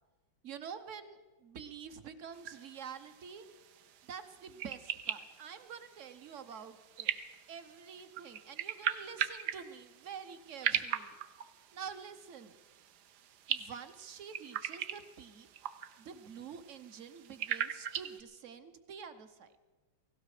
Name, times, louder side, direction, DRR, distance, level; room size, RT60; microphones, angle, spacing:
voice 1, 0.4-3.5 4.0-7.1 7.5-11.2 11.7-12.6 13.5-15.5 16.0-19.5, right 7 dB, 50° right, 11 dB, 1.0 m, -47 dB
sound 1, 2.3-18.2, right 10 dB, 65° right, 1.2 m, -40 dB
18.0 x 16.5 x 4.9 m, 1.2 s
omnidirectional pair, 2.1 m